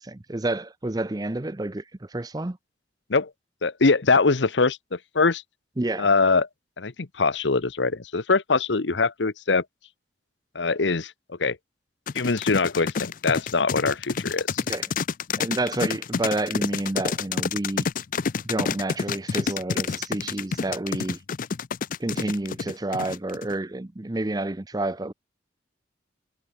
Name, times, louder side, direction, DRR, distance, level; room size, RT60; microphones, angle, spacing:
voice 1, 0.0-2.6 5.8-6.1 14.7-14.9 15.4-17.9 18.4-21.2 22.0-25.1, right 2 dB, 20° right, 0.6 m, -29 dB
voice 2, 3.6-5.4 6.0-6.5 6.8-9.6 10.5-11.1 11.4-11.6 12.1-14.6, left 4 dB, 85° left, 1.0 m, -23 dB
sound 1, 12.1-23.5, left 5 dB, 50° left, 0.5 m, -28 dB
head